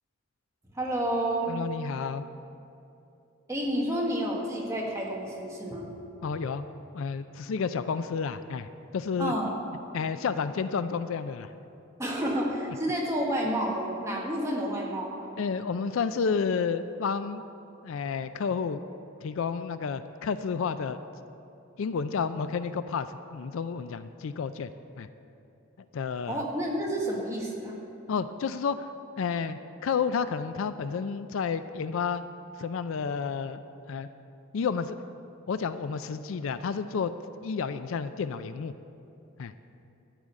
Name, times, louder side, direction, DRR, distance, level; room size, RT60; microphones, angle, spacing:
voice 1, 0.7-1.5 3.5-5.9 9.2-9.5 12.0-15.3 26.3-27.8, right 1 dB, 15° right, -3 dB, 1.6 m, -30 dB
voice 2, 1.5-2.3 6.2-6.7 6.9-8.7 8.9-9.3 9.9-11.5 15.4-17.4 17.8-18.8 19.2-21.0 21.8-24.7 25.0-25.1 25.9-26.4 28.1-28.9 29.2-32.2 32.6-33.6 33.9-34.1 34.5-35.0 35.5-37.1 37.4-38.7 39.4-39.5, left 5 dB, 65° left, 12 dB, 0.4 m, -30 dB
12.5 x 5.0 x 8.3 m, 2.7 s
head